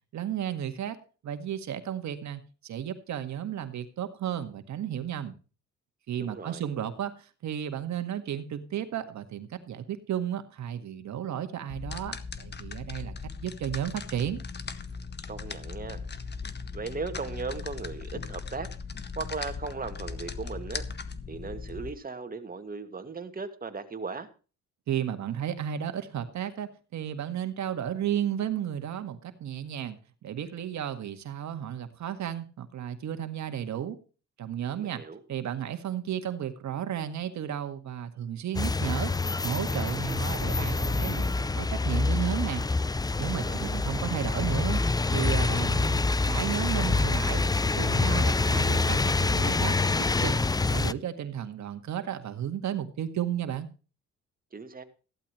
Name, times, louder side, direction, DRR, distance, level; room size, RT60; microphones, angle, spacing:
voice 1, 0.1-1.0 1.2-5.3 6.1-13.1 13.4-14.4 24.9-34.0 34.4-35.0 35.3-39.1 39.4-42.6 43.2-44.8 45.1-47.4 47.8-49.8 50.2-50.3 50.7-53.7, right 10 dB, 65° right, 9 dB, 1.9 m, -33 dB
voice 2, 6.2-6.6 15.3-16.0 16.7-18.7 19.2-20.8 21.3-24.3 34.8-35.2 43.4-43.8 54.5-54.8, right 4 dB, 30° right, 8 dB, 2.3 m, -37 dB
sound 1, 11.7-21.9, left 5 dB, 35° left, 1.5 m, -38 dB
sound 2, 38.5-50.9, left 3 dB, 15° left, 0.5 m, -26 dB
15.5 x 12.0 x 3.2 m, 0.35 s
cardioid pair, 90°, 30 cm